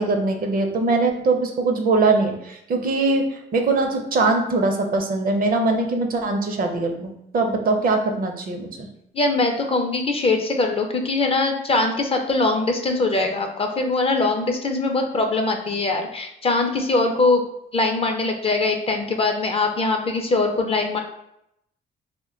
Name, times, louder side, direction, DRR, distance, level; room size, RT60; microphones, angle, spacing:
voice 1, 0.0-3.3 3.5-8.9, right 3 dB, 45° right, 4 dB, 0.5 m, -22 dB
voice 2, 9.1-17.4 17.7-21.0, left 3 dB, 30° left, 4 dB, 0.4 m, -22 dB
2.1 x 2.1 x 3.6 m, 0.79 s
cardioid pair, 90°, 20 cm